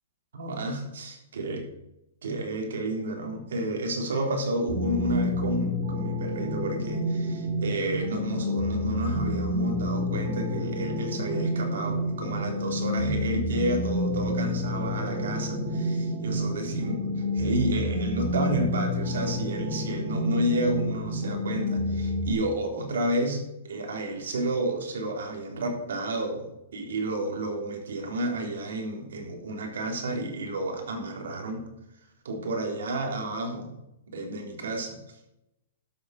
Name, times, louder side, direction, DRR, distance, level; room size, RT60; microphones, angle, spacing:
voice 1, 0.3-1.6 2.2-31.6 32.2-33.7 34.1-35.0, right 1 dB, 90° right, 2 dB, 3.6 m, -31 dB
sound 1, 4.7-22.3, left 1 dB, 40° right, 3.7 m, -29 dB
12.0 x 7.3 x 6.5 m, 0.86 s
hypercardioid pair, 165°, 0 cm